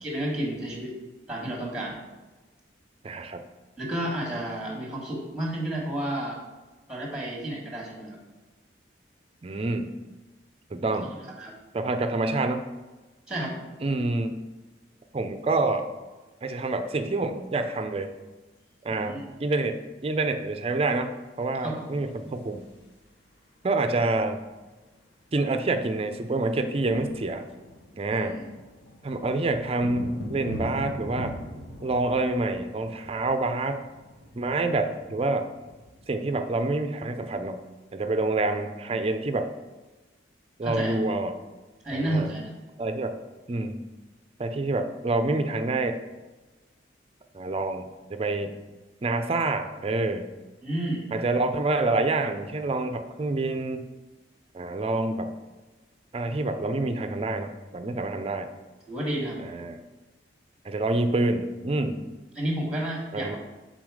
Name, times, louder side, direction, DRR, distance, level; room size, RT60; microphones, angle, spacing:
voice 1, 0.0-0.9 1.3-2.0 3.8-6.4 6.9-8.2 11.4-11.5 13.3-13.6 18.9-19.3 21.6-22.0 22.2-22.4 28.1-28.4 40.6-41.0 41.8-42.5 50.6-51.0 58.9-59.4 62.3-63.4, right 1 dB, 5° right, -1 dB, 1.4 m, -31 dB
voice 2, 3.0-3.4 9.4-9.9 10.7-11.1 11.7-12.6 13.8-14.4 15.1-15.9 16.4-18.1 18.8-22.7 23.6-24.4 25.3-27.5 28.0-28.4 29.0-31.4 31.8-33.8 34.4-35.5 36.1-37.6 37.9-39.5 40.6-41.4 41.9-42.3 42.8-43.2 43.5-43.8 44.4-46.0 47.3-48.5 49.0-50.3 51.1-53.9 54.5-55.3 56.1-58.5 59.4-59.8 60.6-62.0 63.1-63.4, right 2 dB, 30° right, 8 dB, 0.4 m, -27 dB
sound 1, 21.6-23.1 24.4-24.5 24.7-25.0 25.2-37.3, equal, 80° left, 1.5 m, -42 dB
7.9 x 4.0 x 4.8 m, 1.2 s
head